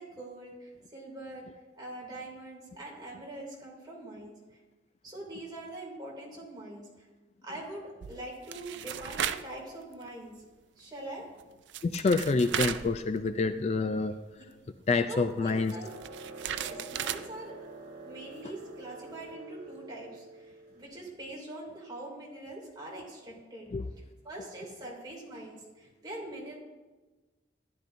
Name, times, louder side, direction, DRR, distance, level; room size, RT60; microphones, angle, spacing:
voice 1, 0.0-4.6 5.0-7.1 7.4-10.5 10.8-11.3 15.1-15.9 16.6-17.6 18.0-23.7 24.2-26.6, right 1 dB, 20° right, -3 dB, 2.5 m, -43 dB
sound 1, 8.0-9.5 9.9-10.1 11.4-11.5 11.7-13.6 13.8-13.9 15.5-17.3, right 9 dB, 70° right, 0.4 m, -36 dB
voice 2, 11.8-14.2 14.9-15.7 23.7-23.9, left 3 dB, 35° left, 10 dB, 0.3 m, -27 dB
sound 2, 15.8-20.9, right 3 dB, 50° right, 2.3 m, -47 dB
13.0 x 11.0 x 2.6 m, 1.2 s
head